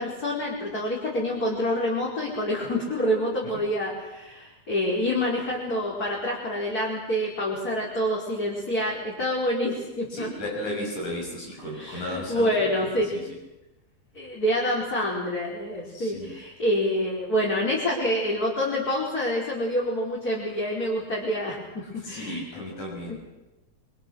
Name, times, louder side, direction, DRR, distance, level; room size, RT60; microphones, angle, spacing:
voice 1, 0.0-10.3 11.8-13.1 14.1-22.6 23.1-23.2, equal, 30° left, -4 dB, 5.3 m, -27 dB
voice 2, 10.1-12.5 13.0-13.2 15.9-16.3 21.8-23.2, left 1 dB, 75° left, -2 dB, 8.1 m, -34 dB
27.5 x 25.0 x 6.5 m, 1.0 s
omnidirectional pair, 3.4 m